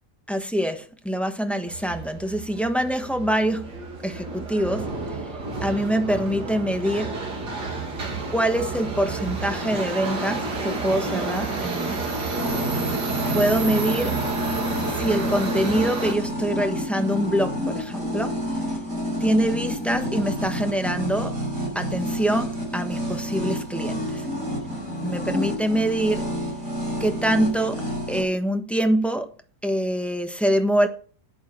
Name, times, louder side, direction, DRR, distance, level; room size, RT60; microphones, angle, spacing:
voice 1, 0.3-3.7 4.0-5.2 5.6-7.2 8.3-12.1 13.3-14.2 14.9-18.4 19.2-21.4 21.7-24.3 25.0-26.3 27.0-29.3 29.6-30.9, right 1 dB, ahead, 1.1 m, -25 dB
Subway metro underground, 1.7-16.1, right 3 dB, 90° right, 3.1 m, -30 dB
sound 1, 12.4-28.2, equal, 50° right, 5.5 m, -29 dB
11.0 x 8.8 x 5.9 m
omnidirectional pair, 1.7 m